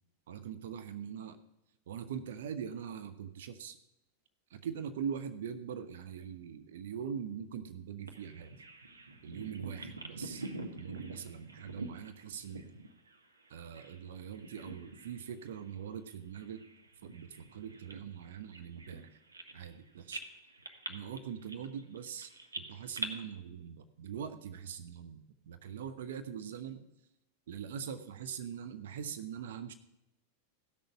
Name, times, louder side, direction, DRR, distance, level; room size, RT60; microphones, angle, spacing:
voice 1, 0.3-1.4 1.9-3.8 4.5-8.5 9.2-10.5 10.7-12.7 13.5-16.7 17.0-19.2 19.5-20.2 20.9-26.9 27.5-29.7, right 8 dB, 60° right, 10 dB, 0.8 m, -42 dB
Bird vocalization bird call bird song, 8.1-14.0 14.3-15.2 15.5-15.7 16.3-19.8 20.1-23.1, right 2 dB, 80° right, 1.2 m, -45 dB
16.0 x 6.5 x 5.8 m, 0.88 s
figure-of-eight pair, 90°, 0 cm